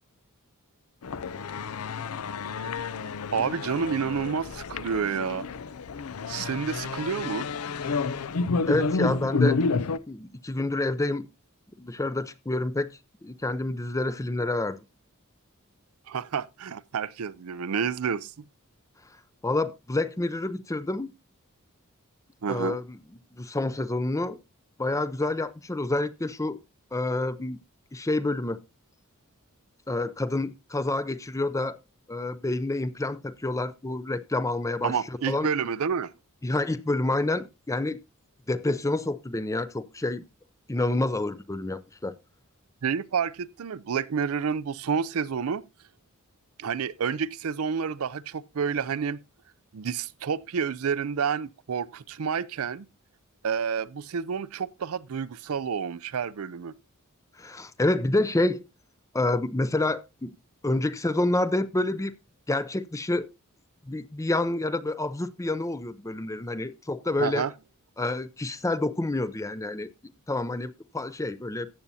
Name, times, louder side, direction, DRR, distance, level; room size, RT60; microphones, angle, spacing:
sound 1, 1.0-10.0, left 4 dB, 75° left, 0.5 m, -30 dB
voice 1, 3.3-5.5 6.3-7.5 16.1-18.4 22.4-22.8 34.8-36.1 42.8-45.6 46.6-49.2 49.7-52.9 53.4-56.7 67.2-67.5, right 6 dB, 70° right, 0.5 m, -29 dB
voice 2, 8.7-9.6 10.1-11.3 11.8-14.8 19.4-21.1 22.5-23.0 23.3-24.4 24.8-26.6 26.9-27.6 27.9-28.6 29.9-31.8 32.1-35.0 35.3-35.5 36.4-38.0 38.5-40.2 40.7-42.2 57.4-58.6 59.1-60.3 60.6-62.1 62.5-63.3 63.9-67.4 68.0-69.9 70.3-71.7, left 2 dB, 15° left, 0.5 m, -28 dB
14.0 x 8.3 x 2.7 m
head